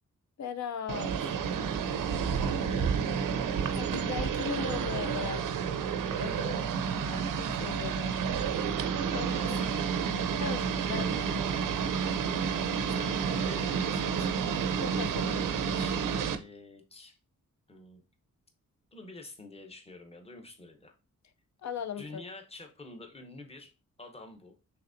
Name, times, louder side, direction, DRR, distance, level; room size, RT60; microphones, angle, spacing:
voice 1, 0.4-1.1 3.7-5.5 6.2-6.5 7.0-8.2 9.1-9.3 10.4-11.4 14.8-15.4 21.6-22.2, left 7 dB, 55° left, 0.5 m, -38 dB
sound 1, 0.9-16.4, right 6 dB, 75° right, 0.6 m, -30 dB
voice 2, 2.2-3.0 6.1-6.6 9.1-10.2 12.2-14.4 15.7-17.2 17.7-18.0 18.9-20.9 22.0-23.7 24.0-24.5, left 2 dB, 20° left, 0.8 m, -47 dB
5.8 x 3.5 x 2.5 m
wide cardioid pair, 170°, 32 cm